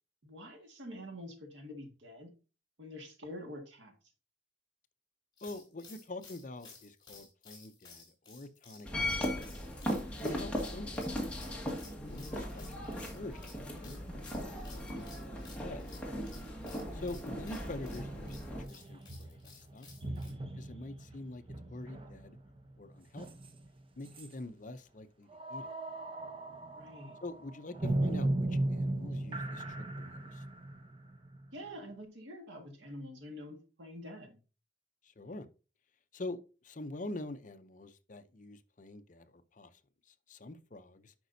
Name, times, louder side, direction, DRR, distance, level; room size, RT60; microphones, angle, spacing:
voice 1, 0.2-2.3 2.8-3.9 16.8-17.2 26.7-27.2 31.5-34.4, equal, 65° right, 1.7 m, -47 dB
voice 2, 5.4-9.6 10.2-15.9 16.9-22.4 22.8-23.3 24.0-25.7 27.2-30.4 35.0-35.5 36.1-39.8 40.1-41.1, left 2 dB, 40° left, 0.6 m, -46 dB
sound 1, 5.4-20.3, left 5 dB, 20° left, 3.4 m, -56 dB
sound 2, 8.9-18.6, equal, 5° left, 1.5 m, -38 dB
sound 3, 18.0-23.8 24.1-24.3 25.3-31.9, right 1 dB, 25° right, 0.8 m, -38 dB
10.5 x 5.1 x 2.7 m
head